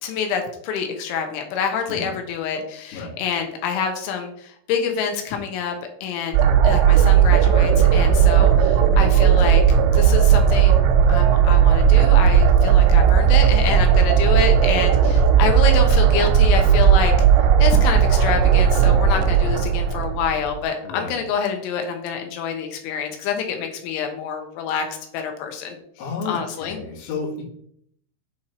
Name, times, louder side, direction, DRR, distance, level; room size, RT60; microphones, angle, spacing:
voice 1, 0.0-6.4 6.6-10.8 11.1-17.1 17.6-25.8 26.3-27.1, left 6 dB, 80° left, 4 dB, 3.1 m, -27 dB
sound 1, 6.3-20.6, right 8 dB, 85° right, 3.3 m, -15 dB
voice 2, 20.8-21.2 26.0-27.4, left 4 dB, 60° left, -3 dB, 3.3 m, -32 dB
7.7 x 4.5 x 4.3 m, 0.67 s
omnidirectional pair, 5.9 m